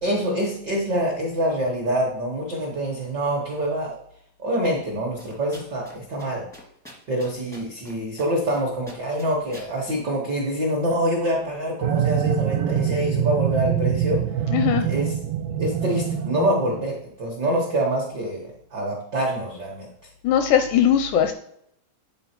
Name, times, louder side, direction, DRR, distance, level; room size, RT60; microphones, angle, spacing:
voice 1, 0.0-3.9 4.4-6.4 7.1-14.2 14.8-15.1 15.6-19.9, right 1 dB, 75° right, -2 dB, 1.0 m, -25 dB
sound 1, 5.2-5.9 6.2-6.3 6.5-8.6 8.9-9.7, equal, 5° left, 0.3 m, -44 dB
sound 2, 11.8-16.9, right 9 dB, 90° right, 2.3 m, -24 dB
voice 2, 14.5-14.9 20.2-21.3, left 9 dB, 85° left, 8 dB, 1.9 m, -19 dB
9.6 x 4.3 x 4.4 m, 0.71 s
omnidirectional pair, 4.1 m